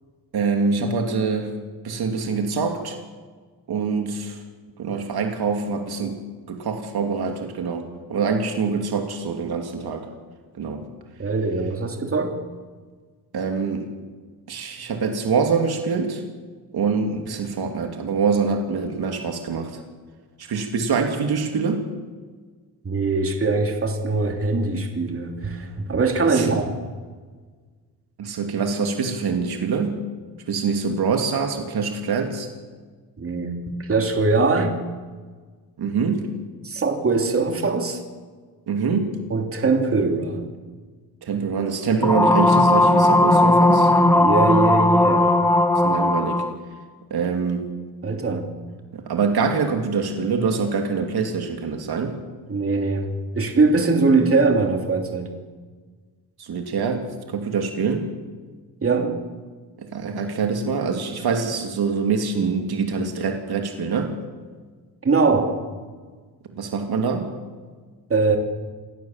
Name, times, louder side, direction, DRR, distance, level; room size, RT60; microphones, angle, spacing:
voice 1, 0.3-1.5 1.8-3.0 3.7-4.4 4.8-10.0 10.6-10.8 13.3-13.9 14.5-16.2 16.7-19.8 20.5-21.9 26.3-26.5 28.2-30.0 30.5-32.5 35.8-36.3 38.7-39.2 41.2-43.9 45.8-46.4 47.1-47.7 48.9-52.2 56.4-58.1 59.8-64.1 66.5-67.4, right 5 dB, 70° right, 4 dB, 2.8 m, -25 dB
voice 2, 11.2-12.3 22.8-26.7 33.2-33.5 33.8-34.7 36.6-38.0 39.3-40.5 44.1-45.3 48.0-48.5 52.5-55.3 58.8-59.2 65.0-65.6 68.1-68.4, right 3 dB, 35° right, 3 dB, 3.1 m, -21 dB
sound 1, 42.0-46.5, left 1 dB, 5° left, 1.7 m, -17 dB
28.0 x 16.5 x 7.4 m, 1.5 s
cardioid pair, 125°, 39 cm